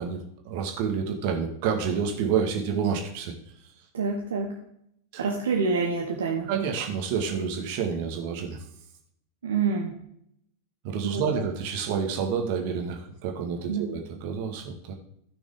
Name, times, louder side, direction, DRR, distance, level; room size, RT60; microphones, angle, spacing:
voice 1, 0.0-3.3 5.1-5.2 6.5-8.6 10.8-14.9, right 6 dB, 45° right, 3 dB, 1.8 m, -29 dB
voice 2, 3.9-4.5 5.2-6.5 9.4-10.0 11.0-11.4 13.7-13.8, right 5 dB, 65° right, 1 dB, 1.3 m, -27 dB
15.0 x 6.2 x 3.7 m, 0.71 s
figure-of-eight pair, 90°, 0 cm